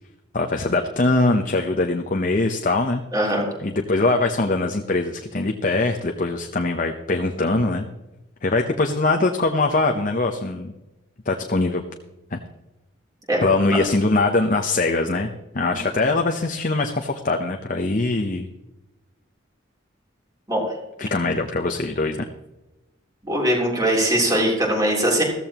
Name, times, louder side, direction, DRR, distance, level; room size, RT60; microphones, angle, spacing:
voice 1, 0.3-3.3 3.6-7.9 8.4-10.7 11.3-11.8 12.3-12.4 13.4-15.3 15.5-18.5 21.0-22.2, left 2 dB, 40° left, 3 dB, 0.8 m, -22 dB
voice 2, 3.1-3.4 13.3-13.4 13.7-13.8 20.5-20.6 23.2-25.2, right 1 dB, 20° right, -1 dB, 3.4 m, -21 dB
15.0 x 14.0 x 3.0 m, 1.0 s
head